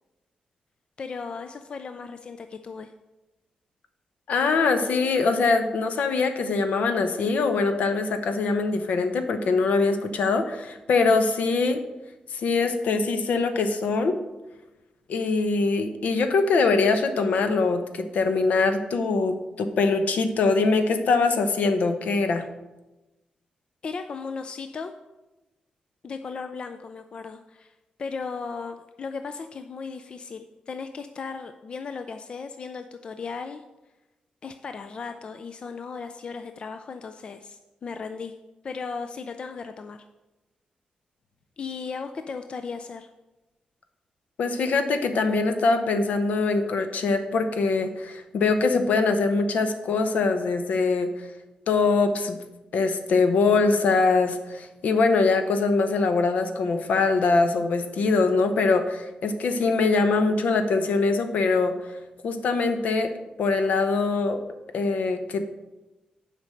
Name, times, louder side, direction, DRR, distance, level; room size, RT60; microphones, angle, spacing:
voice 1, 1.0-2.9 23.8-24.9 26.0-27.7 28.0-33.6 34.4-38.3 38.6-40.0 41.6-43.1, left 5 dB, 40° left, 8 dB, 0.4 m, -36 dB
voice 2, 4.3-11.8 12.3-14.2 15.1-22.5 44.4-51.3 51.7-52.4 52.7-61.8 62.2-63.1 63.4-64.4 64.7-65.4, left 4 dB, 75° left, 8 dB, 0.8 m, -23 dB
7.4 x 5.1 x 6.4 m, 1.0 s
wide cardioid pair, 160°, 3 cm